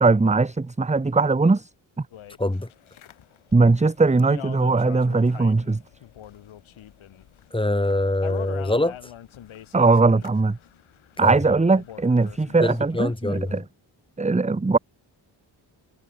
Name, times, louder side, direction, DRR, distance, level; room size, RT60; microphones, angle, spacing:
voice 1, 0.0-1.7 3.5-5.8 9.7-10.6 11.2-13.6 14.2-14.8, right 3 dB, 15° right, 1.0 m, -20 dB
sound 1, 2.1-13.6, left 11 dB, 90° left, 4.9 m, -43 dB
voice 2, 7.5-9.0 11.2-11.4 12.6-13.6, left 1 dB, 10° left, 2.2 m, -24 dB
cardioid pair, 60°, 46 cm